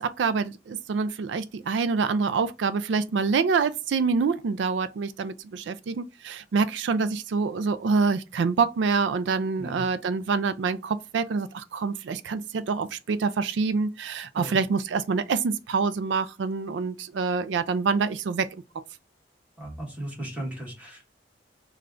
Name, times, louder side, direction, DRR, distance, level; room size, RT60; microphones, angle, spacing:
voice 1, 0.0-18.5, right 4 dB, 85° right, 0.4 m, -26 dB
voice 2, 19.6-21.2, right 1 dB, 10° right, 1.5 m, -36 dB
3.2 x 2.4 x 3.6 m
head